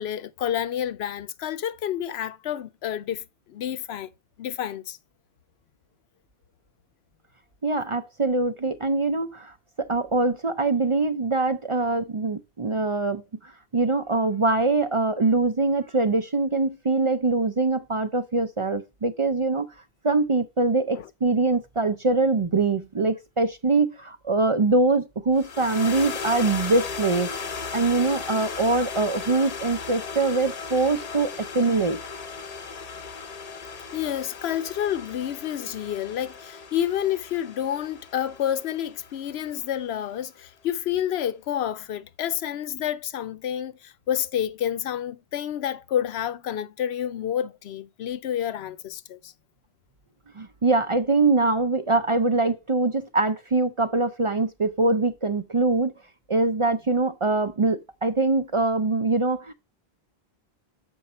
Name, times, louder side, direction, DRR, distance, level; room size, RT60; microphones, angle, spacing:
voice 1, 0.0-3.2 3.5-4.1 4.4-5.0 20.9-21.1 33.9-49.3, left 10 dB, 85° left, 0.9 m, -29 dB
voice 2, 7.6-19.7 20.0-27.3 27.7-32.0 50.4-55.9 56.3-59.5, right 3 dB, 40° right, 0.5 m, -23 dB
sound 1, 25.4-39.8, left 5 dB, 40° left, 0.7 m, -36 dB
7.0 x 5.2 x 4.2 m
omnidirectional pair, 1.1 m